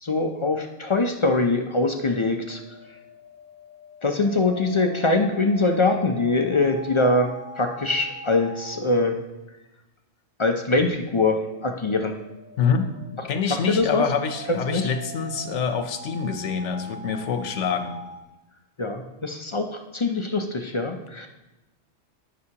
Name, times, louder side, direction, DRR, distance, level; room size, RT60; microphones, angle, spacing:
voice 1, 0.0-2.6 4.0-9.2 10.4-12.1 13.5-14.0 14.5-14.9 18.8-21.3, left 2 dB, 40° left, 4 dB, 0.4 m, -23 dB
sound 1, 1.5-8.9 10.9-18.2, right 2 dB, 45° right, 2.5 m, -42 dB
voice 2, 12.6-12.9 13.3-18.0, left 6 dB, 80° left, 7 dB, 1.1 m, -26 dB
14.0 x 6.1 x 2.9 m, 1.0 s
omnidirectional pair, 1.2 m